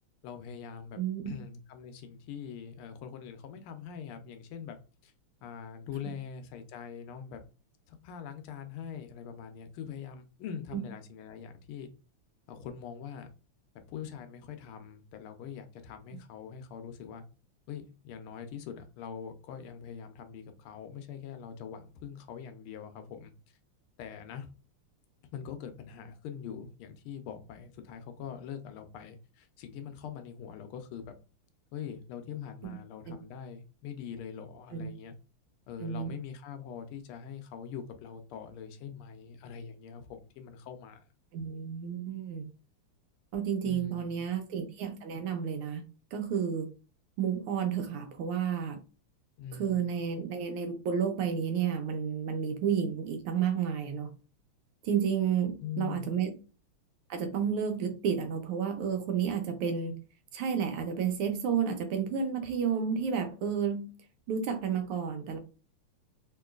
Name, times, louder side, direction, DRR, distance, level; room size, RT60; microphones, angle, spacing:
voice 1, 0.2-1.0 1.2-4.8 5.0-5.1 5.4-7.4 7.9-11.9 12.5-13.3 13.9-17.2 17.7-23.3 24.0-24.5 25.3-31.1 31.7-35.1 35.7-41.0 43.6-44.3 49.4-49.9 55.6-56.1, left 8 dB, 80° left, 1.5 m, -43 dB
voice 2, 1.0-1.3 10.7-10.8 33.1-33.2 34.7-34.9 35.8-36.1 41.3-42.5 43.3-45.8 46.1-46.7 47.2-48.8 49.6-54.1 54.8-56.4 57.1-60.0 60.3-63.9 64.3-65.4, right 7 dB, 90° right, 1.6 m, -31 dB
3.7 x 2.9 x 2.3 m
omnidirectional pair, 2.4 m